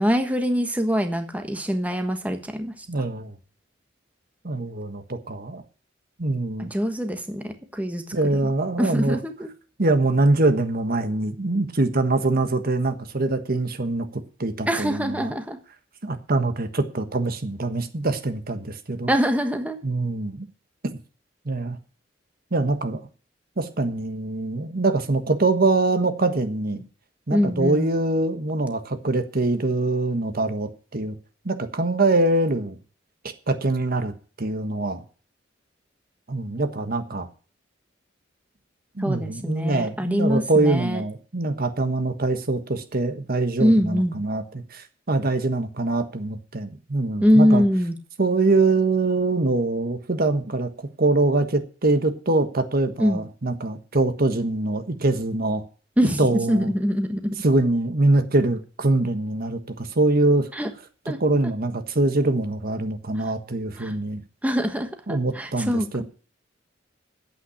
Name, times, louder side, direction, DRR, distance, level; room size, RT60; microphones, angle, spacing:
voice 1, 0.0-2.7 6.6-8.0 8.8-9.5 14.7-15.6 19.1-19.8 27.3-27.8 39.0-41.0 43.6-44.1 47.2-47.9 53.0-53.2 56.0-57.4 60.5-60.7 61.1-61.2 63.8-63.9 64.4-66.0, equal, 10° right, 1.3 m, -23 dB
voice 2, 2.9-3.3 4.4-5.6 6.2-6.7 8.1-9.2 9.8-15.3 16.0-19.1 19.8-20.4 21.4-21.8 22.5-23.0 23.6-26.8 27.3-31.2 31.4-32.8 33.5-34.1 34.4-35.0 36.3-37.3 39.0-47.6 48.2-50.7 51.0-55.6 56.2-56.7 57.4-60.5 61.0-64.2 65.1-66.0, right 2 dB, 50° right, 1.3 m, -23 dB
9.4 x 8.5 x 8.6 m
head